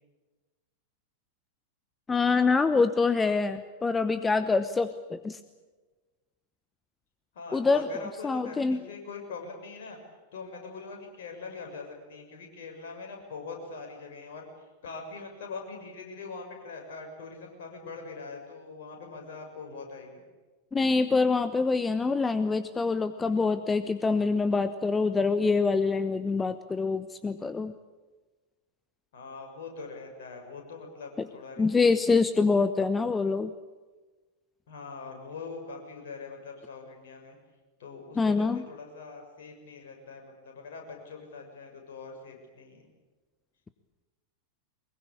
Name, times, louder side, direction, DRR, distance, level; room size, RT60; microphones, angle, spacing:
voice 1, 2.1-5.4 7.5-7.9 8.2-8.8 20.7-27.7 31.2-31.3 31.6-33.5 38.2-38.6, left 4 dB, 15° left, 12 dB, 1.0 m, -25 dB
voice 2, 7.3-10.0 10.3-14.5 14.8-20.2 29.1-32.2 34.7-37.4 37.8-42.9, left 4 dB, 60° left, 3 dB, 6.8 m, -42 dB
23.5 x 22.0 x 8.7 m, 1.3 s
figure-of-eight pair, 90°, 0 cm